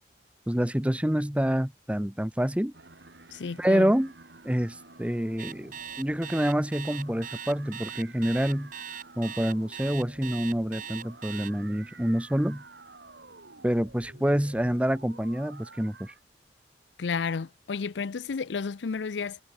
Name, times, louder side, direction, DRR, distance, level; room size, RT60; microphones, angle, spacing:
voice 1, 0.5-2.7 3.6-4.1 4.4-8.7 9.2-12.6 13.6-16.1, equal, 5° right, 0.8 m, -27 dB
sound 1, 2.7-16.2, right 3 dB, 75° right, 3.4 m, -51 dB
voice 2, 3.3-3.9 17.0-19.4, left 5 dB, 85° left, 0.5 m, -32 dB
Alarm, 5.4-11.5, right 8 dB, 50° right, 2.6 m, -39 dB
head